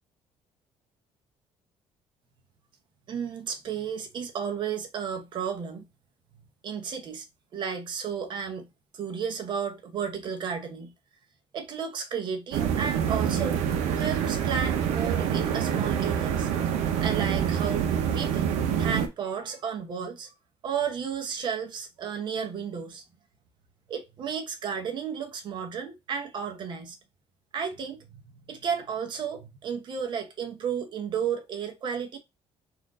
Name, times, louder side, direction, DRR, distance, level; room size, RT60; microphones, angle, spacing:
voice 1, 3.1-5.9 6.6-7.2 7.5-8.7 8.9-10.9 11.5-13.6 14.0-16.5 17.0-17.9 18.1-18.5 18.8-20.3 20.6-23.0 23.9-27.0 27.5-28.2 28.5-32.2, right 7 dB, 45° right, 0.8 m, -33 dB
sound 1, 12.5-19.1, right 8 dB, 90° right, 0.7 m, -26 dB
4.3 x 2.5 x 3.6 m
cardioid pair, 150°, 11 cm